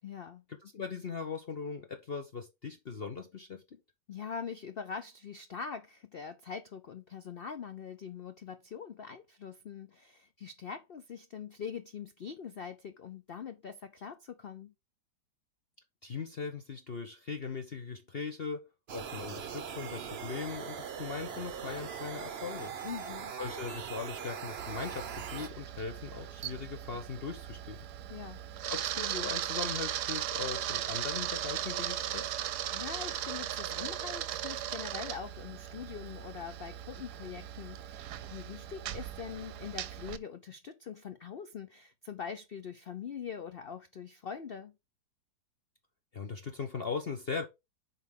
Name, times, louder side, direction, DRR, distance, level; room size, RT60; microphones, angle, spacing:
voice 1, 0.0-0.4 4.1-14.7 22.8-23.4 28.1-28.4 32.7-44.8, left 7 dB, 85° left, 0.5 m, -43 dB
voice 2, 0.6-3.8 16.0-18.7 18.9-22.7 23.4-27.8 28.7-32.3 46.1-47.5, left 5 dB, 45° left, 0.9 m, -39 dB
sound 1, 18.9-25.5, right 7 dB, 50° right, 0.8 m, -41 dB
Camera, 24.6-40.2, right 11 dB, 70° right, 1.1 m, -38 dB
8.1 x 4.9 x 3.7 m
omnidirectional pair, 1.9 m